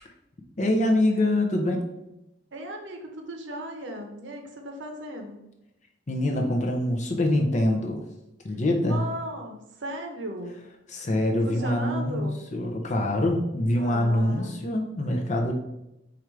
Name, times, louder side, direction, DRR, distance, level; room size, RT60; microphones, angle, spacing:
voice 1, 0.6-1.9 6.1-8.0 8.4-9.0 10.9-15.5, left 1 dB, 35° left, 2 dB, 0.5 m, -24 dB
voice 2, 2.5-5.4 8.5-10.5 11.4-12.4 13.7-14.6, right 1 dB, 65° right, 3 dB, 0.7 m, -36 dB
4.4 x 2.4 x 4.5 m, 0.88 s
head